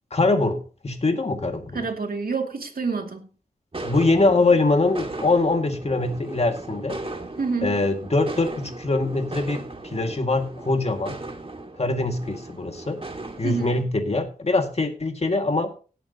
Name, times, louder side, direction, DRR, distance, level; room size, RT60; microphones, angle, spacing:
voice 1, 0.1-1.9 3.8-7.0 7.6-9.6 9.9-11.2 11.8-13.0 13.4-15.7, left 2 dB, 45° left, 2.0 m, -23 dB
voice 2, 1.7-3.2 7.4-7.8 13.4-13.7, right 4 dB, 75° right, 2.3 m, -27 dB
sound 1, 3.7-13.8, right 2 dB, 35° right, 2.0 m, -37 dB
17.0 x 8.8 x 2.9 m
wide cardioid pair, 75°, 15 cm